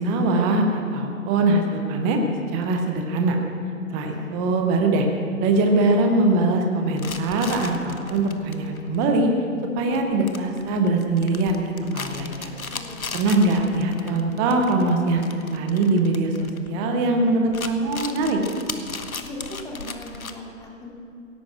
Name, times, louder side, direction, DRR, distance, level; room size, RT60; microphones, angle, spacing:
voice 1, 0.0-2.2 2.5-3.4 3.9-5.1 5.4-9.3 9.8-12.5 13.1-18.4, right 2 dB, 10° right, 3 dB, 0.4 m, -22 dB
voice 2, 3.9-4.3 12.7-13.1 19.1-21.0, left 1 dB, 10° left, -2 dB, 2.4 m, -39 dB
sound 1, 7.0-17.1 17.4-20.4, left 4 dB, 85° left, 1.3 m, -37 dB
17.0 x 9.6 x 7.8 m, 2.4 s
figure-of-eight pair, 130°, 41 cm